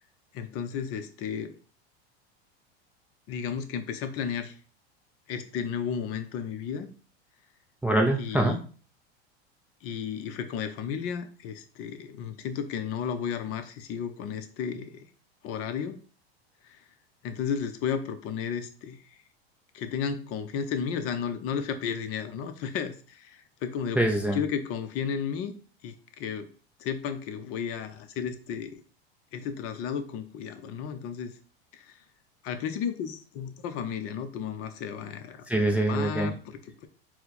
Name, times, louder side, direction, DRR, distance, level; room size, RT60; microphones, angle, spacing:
voice 1, 0.3-1.5 3.3-4.5 5.3-6.9 8.2-8.6 9.8-14.9 15.4-16.0 16.6-16.8 17.2-19.0 19.7-24.0 24.3-25.5 25.8-26.5 26.8-28.8 29.3-31.3 31.7-32.0 32.4-35.5 35.9-36.9, left 7 dB, 45° left, 9 dB, 0.6 m, -33 dB
voice 2, 7.8-8.6 24.0-24.4 35.5-36.3, right 1 dB, 5° right, 2 dB, 0.3 m, -24 dB
4.3 x 2.1 x 4.0 m, 0.40 s
hypercardioid pair, 105°, 32 cm